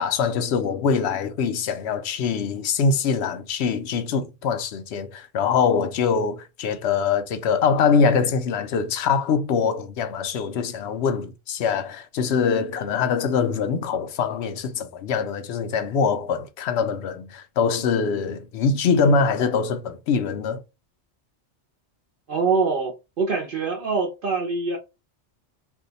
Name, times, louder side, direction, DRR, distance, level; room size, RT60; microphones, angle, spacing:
voice 1, 0.0-20.6, left 5 dB, 70° left, 0.8 m, -23 dB
voice 2, 22.3-24.8, right 4 dB, 55° right, 0.8 m, -24 dB
2.7 x 2.3 x 3.8 m
omnidirectional pair, 1.2 m